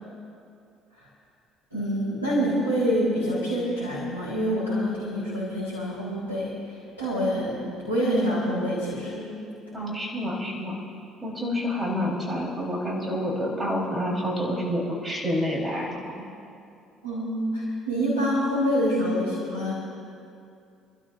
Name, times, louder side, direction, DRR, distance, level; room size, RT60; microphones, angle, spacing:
voice 1, 1.7-7.5 7.9-9.3 17.0-19.7, equal, 90° right, -12 dB, 3.9 m, -26 dB
voice 2, 9.7-10.8 11.2-16.2, equal, 15° right, -3 dB, 4.1 m, -28 dB
28.5 x 12.5 x 2.6 m, 2.5 s
figure-of-eight pair, 50°, 0 cm